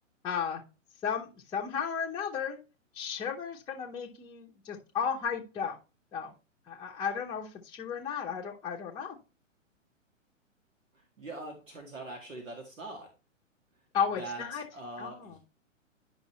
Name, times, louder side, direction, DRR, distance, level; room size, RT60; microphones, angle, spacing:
voice 1, 0.2-0.6 1.0-2.6 2.9-5.8 6.1-6.3 6.7-9.2 13.9-14.6 15.0-15.4, left 7 dB, 10° left, -2 dB, 0.8 m, -34 dB
voice 2, 11.2-13.1 14.2-14.4 14.7-15.4, right 2 dB, 75° right, 2 dB, 2.1 m, -42 dB
10.5 x 5.4 x 3.1 m, 0.31 s
figure-of-eight pair, 115°, 39 cm